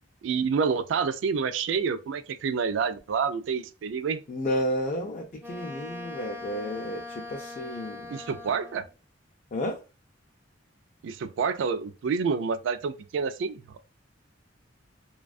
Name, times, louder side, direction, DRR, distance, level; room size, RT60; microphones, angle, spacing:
voice 1, 0.2-4.2 8.1-8.8 11.0-13.8, right 5 dB, 75° right, 0.3 m, -28 dB
voice 2, 4.3-8.1 9.5-9.8, equal, 40° left, 0.4 m, -31 dB
Wind instrument woodwind instrument, 5.4-8.9, left 2 dB, 10° right, 0.5 m, -41 dB
2.5 x 2.3 x 2.3 m
head